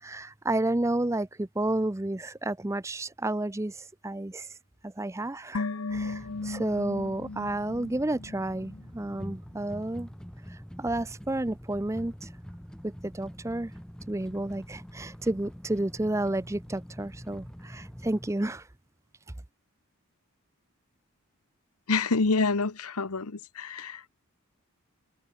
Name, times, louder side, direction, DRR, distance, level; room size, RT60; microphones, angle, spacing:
voice 1, 0.0-4.5 4.8-10.1 10.5-12.3 12.8-13.7 14.1-18.7, right 1 dB, 15° right, 0.5 m, -31 dB
sound 1, 5.5-8.9 9.1-9.2, left 3 dB, 70° left, 0.8 m, -36 dB
sound 2, 5.9-18.3, equal, 5° left, 1.5 m, -45 dB
voice 2, 21.9-24.1, left 3 dB, 90° left, 1.2 m, -27 dB
head